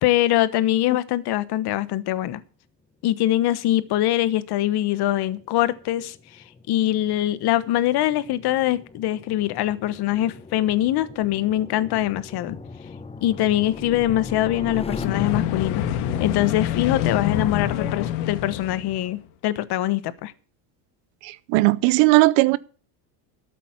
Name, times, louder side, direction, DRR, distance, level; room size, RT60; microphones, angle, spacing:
voice 1, 0.0-2.4 3.0-6.1 6.7-12.6 13.2-15.8 16.2-20.3, left 14 dB, 50° left, 1.2 m, -23 dB
sound 1, 4.1-15.1, left 4 dB, 10° left, 0.7 m, -40 dB
sound 2, 15.0-19.2, left 10 dB, 70° left, 1.5 m, -26 dB
voice 2, 21.2-22.6, right 21 dB, 60° right, 0.7 m, -18 dB
12.5 x 8.4 x 7.2 m
supercardioid pair, 125°, 50 cm